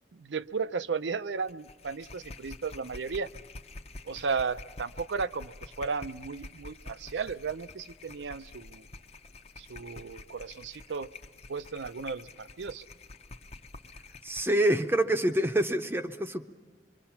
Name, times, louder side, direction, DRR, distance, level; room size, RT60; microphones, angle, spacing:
voice 1, 0.1-3.3 4.1-8.8 9.6-11.1 11.5-12.8, right 5 dB, 85° right, 13 dB, 0.6 m, -34 dB
sound 1, 1.4-14.8, left 3 dB, 35° left, 0.7 m, -48 dB
voice 2, 14.2-16.4, right 1 dB, 15° right, 7 dB, 0.6 m, -26 dB
25.5 x 24.0 x 5.8 m, 1.4 s
head